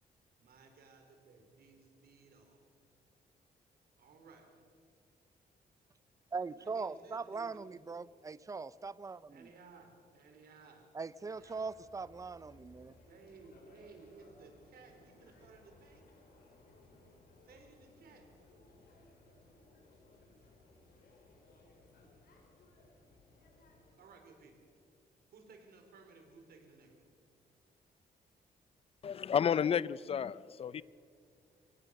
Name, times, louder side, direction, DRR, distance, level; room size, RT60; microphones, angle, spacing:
voice 1, 0.4-2.6 4.0-4.5 6.6-8.1 9.3-10.9 11.2-11.7 13.0-16.1 17.4-18.2 24.0-24.7 25.3-27.0 30.7-30.8, right 4 dB, 75° right, 4.3 m, -58 dB
voice 2, 6.3-9.5 10.9-12.9, right 4 dB, 20° right, 0.5 m, -41 dB
sound 1, 11.4-24.0, left 2 dB, 70° left, 5.2 m, -62 dB
voice 3, 29.0-30.8, left 8 dB, 40° left, 0.4 m, -31 dB
25.0 x 17.5 x 6.5 m
cardioid pair, 125°, 16 cm